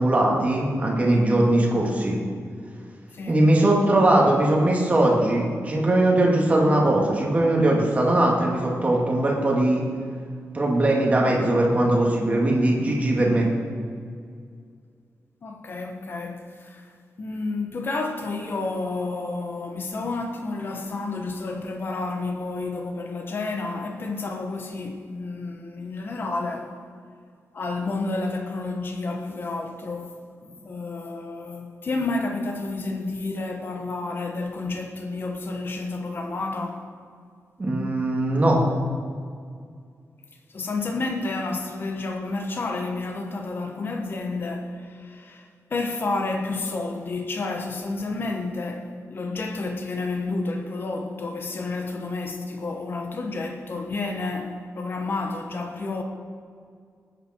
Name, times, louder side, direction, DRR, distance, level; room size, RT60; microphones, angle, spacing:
voice 1, 0.0-2.2 3.3-9.8 10.5-13.5 37.6-38.6, right 1 dB, 25° right, 2.4 m, -20 dB
voice 2, 15.4-16.9 17.2-26.7 27.5-36.8 40.5-56.0, left 3 dB, 40° left, 1.2 m, -30 dB
19.5 x 9.3 x 4.6 m
wide cardioid pair, 175°, 5 cm